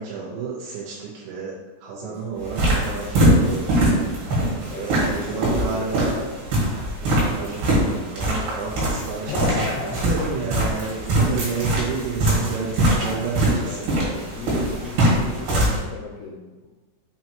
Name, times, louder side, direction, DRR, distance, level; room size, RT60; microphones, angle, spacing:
voice 1, 0.0-1.5 1.8-4.0 4.7-6.2 7.0-13.9, right 4 dB, 85° right, -6 dB, 3.3 m, -31 dB
sound 1, 2.4-15.8, right 1 dB, 70° right, 3.9 m, -22 dB
voice 2, 4.7-5.9 9.3-10.0 13.6-16.7, left 4 dB, 80° left, 0 dB, 2.5 m, -34 dB
7.2 x 3.0 x 4.5 m, 1.2 s
omnidirectional pair, 5.0 m